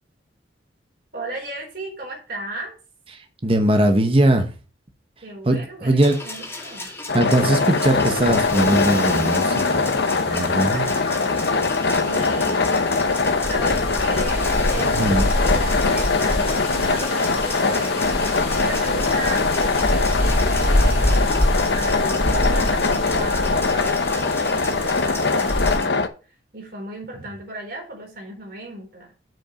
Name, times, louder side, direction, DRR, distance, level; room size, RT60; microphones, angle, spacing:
voice 1, 1.1-2.8 5.2-6.9 7.4-7.6 10.3-11.6 12.0-12.7 13.5-18.0 18.6-21.3 21.7-26.0 26.5-29.1, right 1 dB, 55° right, 4.4 m, -35 dB
voice 2, 3.1-4.5 5.5-6.2 7.1-9.9 10.3-10.9 14.9-15.3, right 1 dB, 30° right, 1.0 m, -20 dB
sound 1, 6.0-25.8, left 2 dB, 15° left, 2.2 m, -35 dB
sound 2, 7.1-26.1, left 3 dB, 65° left, 0.8 m, -22 dB
sound 3, 7.3-25.8, left 1 dB, 35° left, 2.3 m, -27 dB
7.7 x 5.3 x 5.1 m
head